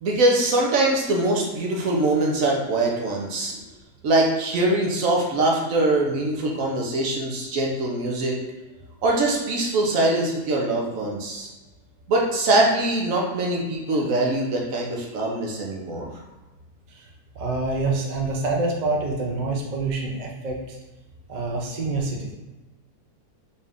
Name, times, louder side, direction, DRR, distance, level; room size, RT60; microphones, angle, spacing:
voice 1, 0.0-3.6 4.0-8.4 9.0-11.5 12.1-16.1, right 2 dB, 65° right, -1 dB, 1.1 m, -23 dB
voice 2, 17.4-20.8 21.3-22.3, right 3 dB, 90° right, -1 dB, 0.4 m, -26 dB
4.1 x 2.5 x 3.5 m, 1.1 s
omnidirectional pair, 1.7 m